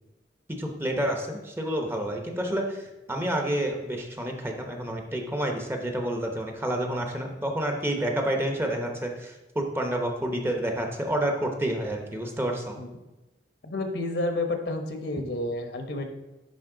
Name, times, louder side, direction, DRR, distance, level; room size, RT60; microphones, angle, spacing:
voice 1, 0.5-12.8, right 1 dB, 15° right, 3 dB, 0.8 m, -29 dB
voice 2, 13.6-16.1, left 2 dB, 65° left, 5 dB, 1.0 m, -30 dB
10.5 x 4.2 x 3.8 m, 1.0 s
head